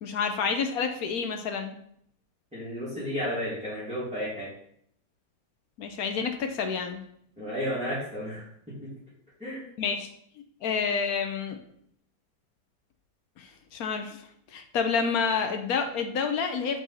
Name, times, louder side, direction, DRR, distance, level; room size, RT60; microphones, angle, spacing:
voice 1, 0.0-1.7 5.8-7.0 9.8-10.1 10.6-11.6 13.4-16.8, left 5 dB, 65° left, 6 dB, 1.0 m, -29 dB
voice 2, 2.5-4.5 7.4-8.7 9.4-9.6, equal, 5° right, -11 dB, 2.2 m, -33 dB
5.5 x 4.8 x 4.1 m, 0.68 s
omnidirectional pair, 1.9 m